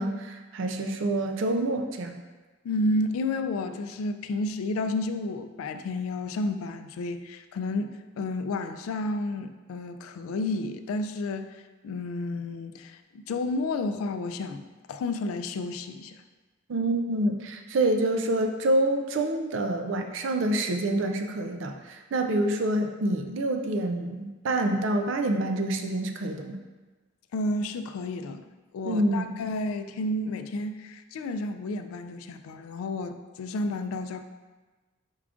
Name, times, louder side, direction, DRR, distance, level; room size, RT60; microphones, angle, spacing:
voice 1, 0.0-2.2 16.7-26.6 28.8-29.4, right 1 dB, 65° right, 5 dB, 0.4 m, -27 dB
voice 2, 2.6-16.2 27.3-28.4 28.7-34.2, left 2 dB, 90° left, 9 dB, 0.3 m, -31 dB
4.6 x 3.5 x 2.4 m, 1.3 s
head